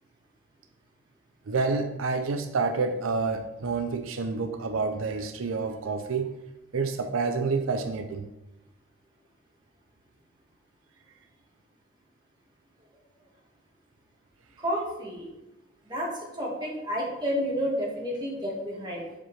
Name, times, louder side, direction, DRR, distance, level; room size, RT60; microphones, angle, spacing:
voice 1, 1.5-6.3 6.7-8.3, right 4 dB, 80° right, 7 dB, 0.5 m, -28 dB
voice 2, 14.6-15.3 15.9-16.1 16.4-19.0, equal, 20° right, -3 dB, 1.5 m, -30 dB
7.2 x 5.2 x 3.2 m, 0.97 s
head